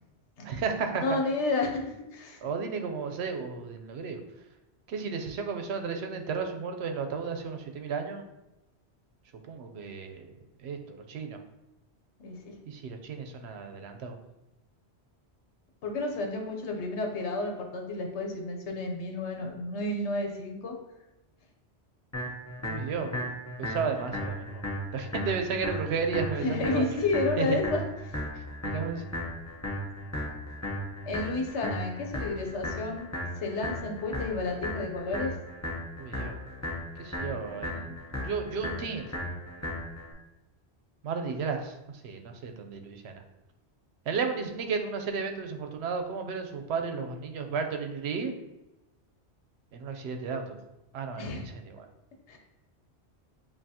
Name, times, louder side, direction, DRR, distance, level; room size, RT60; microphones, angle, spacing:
voice 1, 0.4-1.0 2.4-4.2 4.9-8.2 9.5-10.3 10.6-11.4 12.7-14.2 22.6-23.2 23.6-24.6 24.9-26.9 27.4-27.6 28.6-29.0 36.0-36.4 37.0-39.1 41.0-41.7 42.0-43.2 44.1-48.3 49.7-50.6 50.9-51.9, right 5 dB, 75° right, 5 dB, 0.9 m, -33 dB
voice 2, 1.0-2.5 12.2-12.5 15.8-20.7 26.4-27.8 31.1-33.1 33.4-35.3 51.2-51.5 52.3-52.4, left 3 dB, 80° left, 2 dB, 1.1 m, -31 dB
sound 1, 22.1-40.1, left 1 dB, 15° left, 0.8 m, -36 dB
7.4 x 2.6 x 2.8 m, 0.96 s
omnidirectional pair, 1.1 m